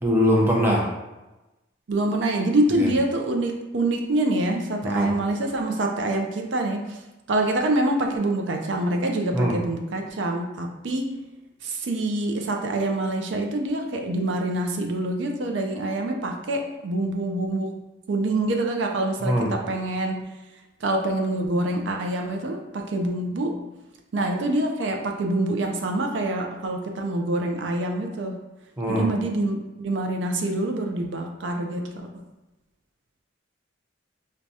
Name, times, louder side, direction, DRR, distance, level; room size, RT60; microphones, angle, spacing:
voice 1, 0.0-0.8 2.8-2.9 4.8-5.1 9.3-9.6 19.2-19.5 28.8-29.1, equal, 10° right, -3 dB, 0.5 m, -22 dB
voice 2, 1.9-7.0 7.3-11.1 11.6-17.8 18.1-20.2 20.8-23.6 24.1-28.4 28.9-31.9, right 1 dB, 65° right, 3 dB, 0.4 m, -26 dB
4.6 x 2.2 x 2.6 m, 1.0 s
head